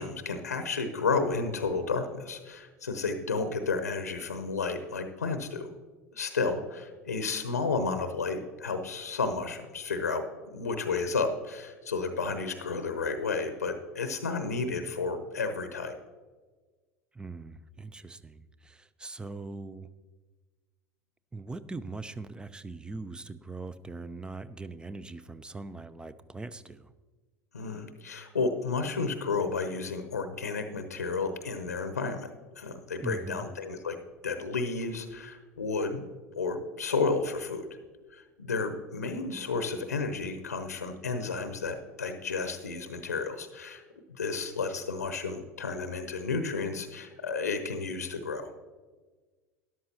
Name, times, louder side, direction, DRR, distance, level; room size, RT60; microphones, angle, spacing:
voice 1, 0.0-5.7 6.2-10.2 10.5-16.0 27.5-32.3 32.6-34.0 34.2-36.1 36.4-37.6 38.1-43.8 44.1-48.5, left 4 dB, 85° left, 8 dB, 0.8 m, -32 dB
voice 2, 17.1-19.9 21.3-26.9 33.0-33.4, right 3 dB, 10° right, 15 dB, 0.6 m, -41 dB
13.0 x 11.0 x 2.9 m, 1.3 s
figure-of-eight pair, 75°, 8 cm